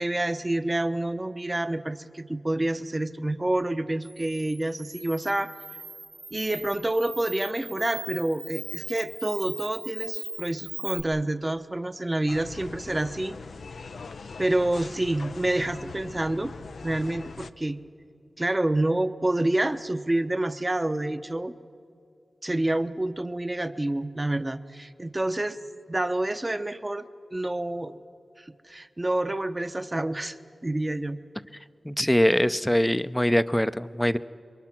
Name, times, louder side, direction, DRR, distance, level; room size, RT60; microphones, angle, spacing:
voice 1, 0.0-5.5 6.3-13.4 14.4-16.5 16.8-17.8 18.4-21.5 22.4-25.6 25.9-27.1 27.3-28.0 28.4-30.4 30.6-31.2, right 1 dB, 25° right, 10 dB, 0.9 m, -28 dB
Camera, 4.0-11.0, right 3 dB, 60° right, 2.5 m, -39 dB
sound 1, 12.3-17.5, left 4 dB, 85° left, 0.6 m, -41 dB
voice 2, 31.8-34.2, equal, 10° left, 14 dB, 0.6 m, -23 dB
27.0 x 22.5 x 6.0 m, 2.4 s
cardioid pair, 40°, 0 cm